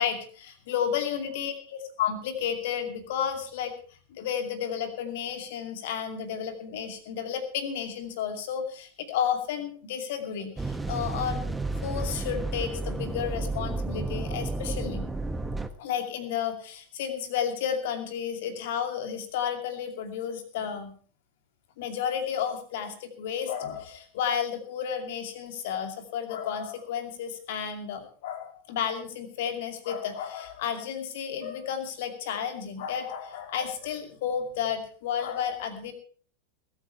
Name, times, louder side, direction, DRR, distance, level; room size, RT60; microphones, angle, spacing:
voice 1, 0.0-3.7 4.1-15.1 15.8-20.9 21.8-35.9, left 8 dB, 55° left, 7 dB, 2.5 m, -32 dB
sound 1, 10.6-15.7, right 2 dB, 10° right, 1.0 m, -32 dB
21.0 x 8.9 x 4.5 m, 0.43 s
figure-of-eight pair, 90°, 0 cm